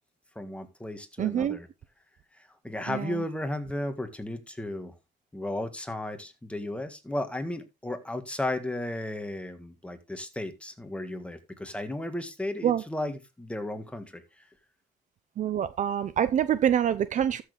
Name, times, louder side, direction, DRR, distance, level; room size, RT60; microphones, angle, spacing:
voice 1, 0.4-1.7 2.3-4.9 5.3-14.4, left 1 dB, 5° left, 1.8 m, -34 dB
voice 2, 1.2-1.6 2.9-3.2 12.6-12.8 15.4-17.4, right 9 dB, 45° right, 0.7 m, -26 dB
13.5 x 6.5 x 3.4 m
cardioid pair, 110°, 17 cm